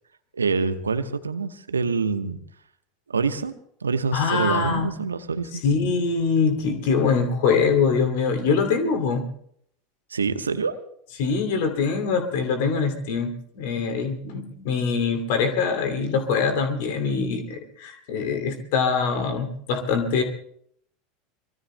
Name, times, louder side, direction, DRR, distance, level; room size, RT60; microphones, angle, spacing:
voice 1, 0.3-2.4 3.1-3.5 3.8-5.6 10.1-10.8, right 4 dB, 85° right, 10 dB, 1.0 m, -26 dB
voice 2, 4.1-4.9 5.5-9.2 11.2-20.2, left 5 dB, 60° left, 6 dB, 2.5 m, -23 dB
25.0 x 24.0 x 2.2 m, 0.67 s
figure-of-eight pair, 80°, 0 cm